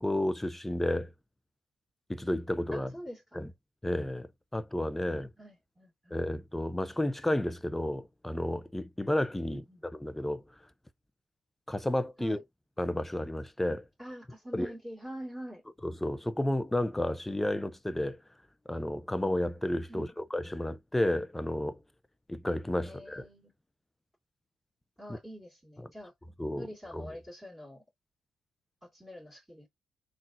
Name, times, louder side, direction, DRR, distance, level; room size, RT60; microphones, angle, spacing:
voice 1, 0.0-1.1 2.1-2.9 3.3-3.5 3.8-5.3 6.1-9.6 10.0-10.7 11.7-12.4 12.8-13.9 14.5-14.7 15.8-18.2 18.7-21.8 22.3-23.3 25.1-25.2 25.8-25.9 26.4-26.7 26.9-27.2, left 1 dB, 10° left, 0.6 m, -32 dB
voice 2, 2.7-3.4 5.4-6.2 9.5-9.8 12.2-12.4 14.0-15.6 19.9-20.1 22.8-23.5 25.0-26.1 26.5-27.8 28.8-29.7, equal, 10° right, 2.1 m, -45 dB
3.8 x 2.5 x 2.6 m
hypercardioid pair, 50°, 3 cm